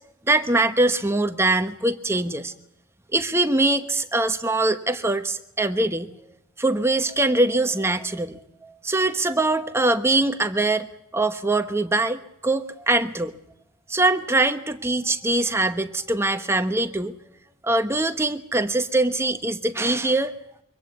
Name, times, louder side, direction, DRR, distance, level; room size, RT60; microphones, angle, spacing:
voice 1, 0.3-2.5 3.1-6.1 6.6-10.9 11.1-13.3 13.9-17.1 17.6-20.3, right 2 dB, 15° right, 8 dB, 1.0 m, -23 dB
23.5 x 17.5 x 8.2 m, 0.76 s
head